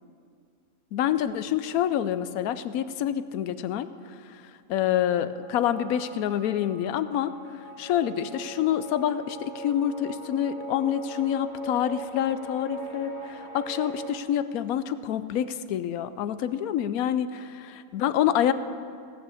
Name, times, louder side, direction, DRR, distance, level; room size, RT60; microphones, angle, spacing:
voice 1, 0.9-3.9 4.3-4.4 4.7-7.3 7.8-18.5, left 10 dB, 90° left, 13 dB, 1.1 m, -27 dB
sound 1, 5.3-14.2, right 3 dB, 25° right, 0.9 m, -40 dB
17.5 x 6.2 x 8.2 m, 2.3 s
omnidirectional pair, 1.5 m